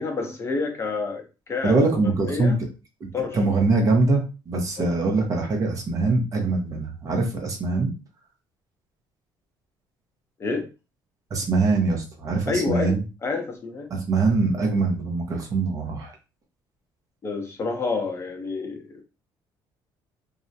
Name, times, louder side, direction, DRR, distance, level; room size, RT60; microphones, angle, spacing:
voice 1, 0.0-2.6 3.1-3.4 4.8-5.0 10.4-10.7 12.5-13.9 17.2-18.8, left 4 dB, 30° left, 3 dB, 0.6 m, -29 dB
voice 2, 1.6-2.5 3.3-7.9 11.3-13.0 13.9-16.1, right 3 dB, 40° right, 1 dB, 0.7 m, -23 dB
2.4 x 2.0 x 2.6 m, 0.30 s
cardioid pair, 130°, 9 cm